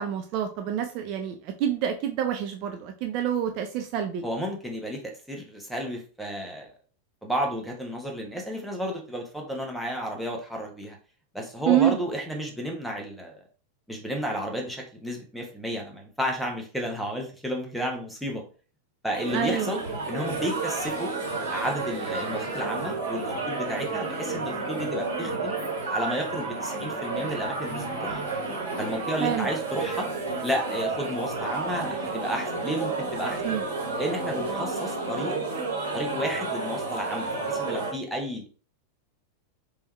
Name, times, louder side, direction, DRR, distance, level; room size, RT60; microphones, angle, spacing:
voice 1, 0.0-4.2 11.7-12.0 19.3-19.7 29.2-29.5 33.4-33.6, right 10 dB, 40° right, 5 dB, 0.4 m, -27 dB
voice 2, 4.2-6.7 7.2-11.0 11.3-13.4 13.9-18.4 19.0-19.8 20.1-21.1 21.5-25.6 25.9-28.2 28.8-30.1 30.4-33.5 34.0-35.4 35.9-38.4, equal, ahead, -1 dB, 1.1 m, -32 dB
sound 1, 19.1-37.9, right 3 dB, 65° right, 2.0 m, -31 dB
3.4 x 3.4 x 3.0 m, 0.38 s
figure-of-eight pair, 90°, 0 cm